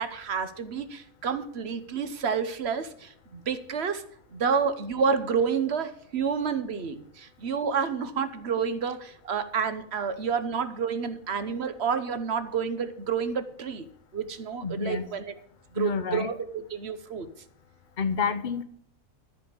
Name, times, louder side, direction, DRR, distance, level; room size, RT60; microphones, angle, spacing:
voice 1, 0.0-4.0 4.3-13.9 14.1-15.3 15.7-17.3, right 6 dB, 55° right, 11 dB, 1.2 m, -29 dB
voice 2, 14.6-15.1 15.8-16.3 18.0-18.6, left 5 dB, 40° left, 11 dB, 0.9 m, -29 dB
13.5 x 5.2 x 8.8 m, 0.63 s
omnidirectional pair, 1.4 m